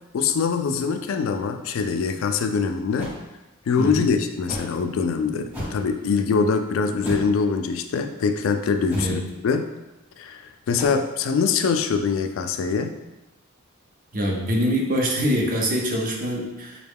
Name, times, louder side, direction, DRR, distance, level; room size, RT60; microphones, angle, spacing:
voice 1, 0.1-3.1 3.7-9.7 10.2-13.0, left 5 dB, 70° left, 7 dB, 0.3 m, -23 dB
sound 1, 3.0-3.2 4.5-4.8 5.5-5.9 7.0-7.4 8.9-9.2 10.8-10.9, equal, 10° right, 0.9 m, -32 dB
voice 2, 3.8-4.1 9.0-9.2 14.1-16.9, equal, 40° right, 1 dB, 0.6 m, -24 dB
4.8 x 2.2 x 3.5 m, 0.98 s
head